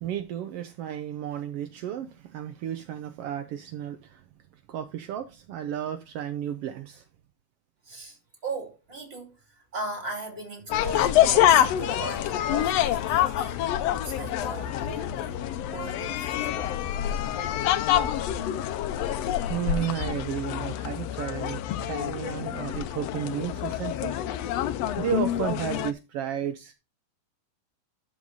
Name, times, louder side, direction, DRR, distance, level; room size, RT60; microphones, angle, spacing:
voice 1, 0.0-4.2 4.7-7.0 19.5-24.2 25.0-26.7, right 10 dB, 80° right, 1.3 m, -33 dB
voice 2, 7.8-13.6 13.9-16.7, right 2 dB, 20° right, 2.5 m, -38 dB
sound 1, 10.7-25.9, left 12 dB, 80° left, 1.5 m, -26 dB
12.5 x 4.8 x 4.0 m
omnidirectional pair, 3.6 m